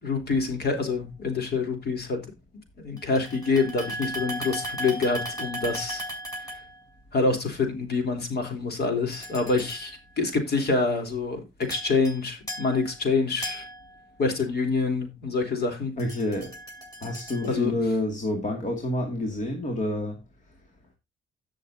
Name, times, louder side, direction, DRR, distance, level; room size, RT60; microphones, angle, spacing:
voice 1, 0.0-2.2 2.8-6.0 7.1-13.6 14.2-15.9 17.4-17.7, left 4 dB, 55° left, 3.6 m, -26 dB
sound 1, 3.0-6.9 9.1-10.0 11.6-12.2 12.5-14.4 16.0-17.7, equal, 20° left, 7.5 m, -37 dB
voice 2, 16.0-16.5 17.0-20.2, left 1 dB, 40° left, 2.3 m, -28 dB
17.0 x 6.5 x 2.7 m
cardioid pair, 90°, 20 cm